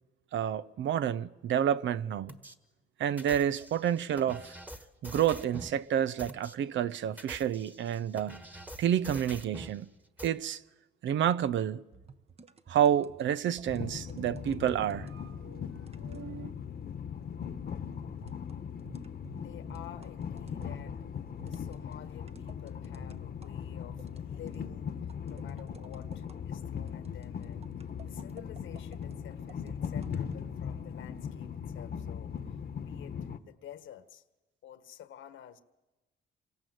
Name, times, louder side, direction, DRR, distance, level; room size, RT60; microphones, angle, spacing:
voice 1, 0.3-2.4 3.0-4.5 5.0-8.4 8.8-9.9 10.2-10.6 11.0-11.8 12.7-15.7 16.0-16.5, right 10 dB, 70° right, 0.8 m, -29 dB
sound 1, 2.3-2.6 3.2-5.8 6.2-6.5 7.1-9.8 10.2-10.3, equal, 10° right, 1.6 m, -45 dB
sound 2, 11.9-15.3 15.9-16.3 18.2-23.5 24.0-24.6 25.1-26.4 26.9-30.5, right 6 dB, 30° right, 1.1 m, -54 dB
Train, 13.7-33.4, left 7 dB, 50° left, 1.3 m, -39 dB
voice 2, 19.3-21.0 21.4-24.9 25.3-27.7 28.0-32.3 32.8-33.2 33.4-34.2 34.6-35.6, left 10 dB, 75° left, 1.6 m, -51 dB
27.0 x 24.5 x 8.0 m
cardioid pair, 90°, 20 cm